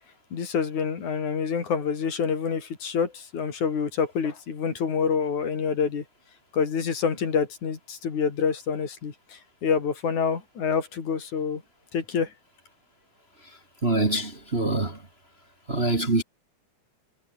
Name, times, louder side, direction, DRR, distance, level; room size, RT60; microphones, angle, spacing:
voice 1, 0.3-6.0 6.5-11.6 11.9-12.3, left 6 dB, 70° left, 4.7 m, -27 dB
voice 2, 13.8-15.0 15.7-16.2, right 2 dB, 20° right, 2.1 m, -24 dB
omnidirectional pair, 3.5 m